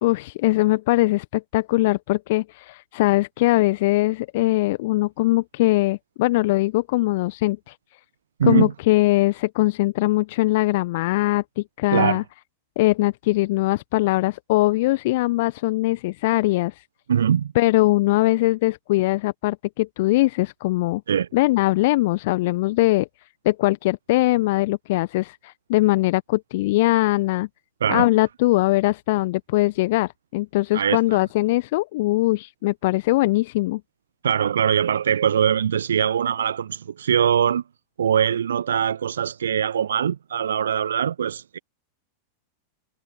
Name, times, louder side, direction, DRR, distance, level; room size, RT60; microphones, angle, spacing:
voice 1, 0.0-7.8 8.4-12.2 12.8-16.8 17.5-21.0 21.3-23.1 23.4-27.5 27.9-33.8, left 19 dB, 50° left, 1.3 m, -21 dB
voice 2, 8.4-8.7 11.9-12.2 17.1-17.5 21.1-21.3 27.8-28.1 30.7-31.2 34.2-37.6 38.0-41.6, right 8 dB, 65° right, 1.2 m, -22 dB
figure-of-eight pair, 90°, 0 cm